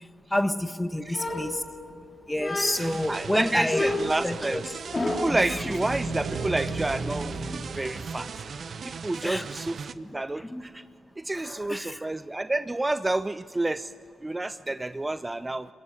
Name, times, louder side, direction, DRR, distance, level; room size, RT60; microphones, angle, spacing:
voice 1, 0.3-1.6 2.3-3.8 4.2-4.6 5.5-5.6 9.2-9.5 10.5-10.7 11.4-12.0, left 1 dB, 10° left, 10 dB, 1.5 m, -28 dB
sound 1, 1.1-2.0 2.4-3.0 3.7-5.5, left 2 dB, 30° left, 3.3 m, -30 dB
voice 2, 2.6-4.6 5.1-8.3 8.8-10.8 11.2-13.9 14.2-15.7, right 2 dB, 20° right, 13 dB, 0.6 m, -30 dB
sound 2, 2.7-9.9, right 5 dB, 60° right, 0.9 m, -39 dB
sound 3, 4.9-9.3, right 3 dB, 80° right, 4.5 m, -35 dB
23.0 x 20.5 x 7.9 m, 2.6 s
supercardioid pair, 55°, 0 cm